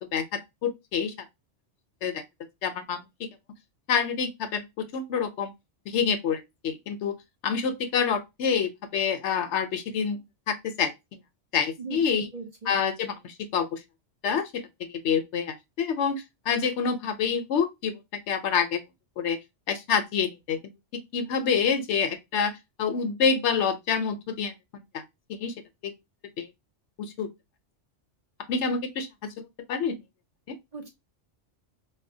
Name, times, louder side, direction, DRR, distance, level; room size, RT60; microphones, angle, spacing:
voice 1, 0.1-1.1 2.0-2.2 2.6-3.3 3.9-5.5 5.9-7.1 7.4-10.2 10.5-10.9 11.5-12.3 12.7-13.8 14.2-14.6 15.0-18.0 18.3-18.8 19.2-19.4 19.7-20.6 21.1-24.5 24.9-25.0 25.3-25.5 25.8-25.9 26.4-26.5 27.0-27.3 28.5-30.0 30.5-30.6, left 6 dB, 70° left, 0.9 m, -27 dB
voice 2, 12.3-12.7 30.7-30.9, right 3 dB, 40° right, 0.9 m, -38 dB
4.2 x 2.2 x 2.5 m
omnidirectional pair, 1.2 m